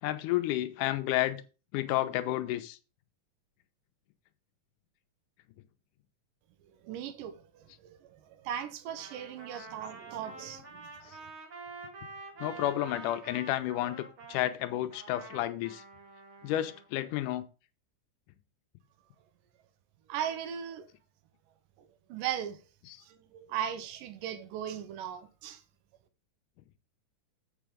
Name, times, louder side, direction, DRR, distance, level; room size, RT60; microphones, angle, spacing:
voice 1, 0.0-1.4 1.7-2.8 9.6-9.7 11.0-11.2 12.4-15.8 16.4-17.4, left 14 dB, 85° left, 2.2 m, -31 dB
voice 2, 6.7-11.1 20.1-20.9 21.8-22.6 23.0-25.6, right 9 dB, 90° right, 2.5 m, -38 dB
Trumpet, 8.9-14.4 14.9-16.9, right 3 dB, 45° right, 2.3 m, -47 dB
7.6 x 6.1 x 5.0 m
omnidirectional pair, 3.7 m